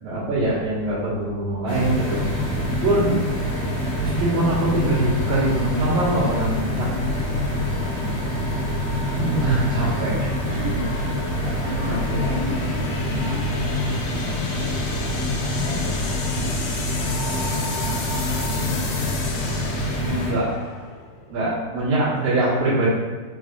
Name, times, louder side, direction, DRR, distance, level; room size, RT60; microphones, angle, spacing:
voice 1, 0.0-2.3 2.8-3.2 4.0-6.9 9.2-10.3 11.8-12.3 20.0-20.5 21.3-22.9, right 2 dB, 60° right, -9 dB, 1.9 m, -23 dB
sound 1, 1.7-20.3, left 1 dB, 60° left, 2.3 m, -25 dB
sound 2, 6.2-22.2, left 4 dB, 85° left, 2.4 m, -37 dB
voice 2, 7.9-10.2 10.5-11.3 11.6-16.7 17.3-18.0 18.5-18.9 21.4-21.9, right 1 dB, 75° right, -9 dB, 1.4 m, -36 dB
5.6 x 3.2 x 2.5 m, 1.4 s
omnidirectional pair, 4.5 m